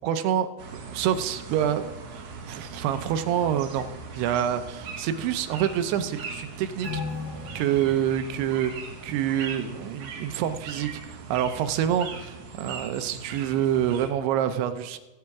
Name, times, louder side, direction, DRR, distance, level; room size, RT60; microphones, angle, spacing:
voice 1, 0.0-0.5 0.9-7.0 7.6-8.7 9.0-15.0, right 10 dB, 85° right, 9 dB, 2.7 m, -27 dB
sound 1, 0.6-14.1, right 4 dB, 55° right, 2.7 m, -40 dB
sound 2, 6.8-9.8 10.1-10.2, left 4 dB, 60° left, 5.8 m, -38 dB
18.0 x 8.6 x 3.5 m, 1.1 s
omnidirectional pair, 4.8 m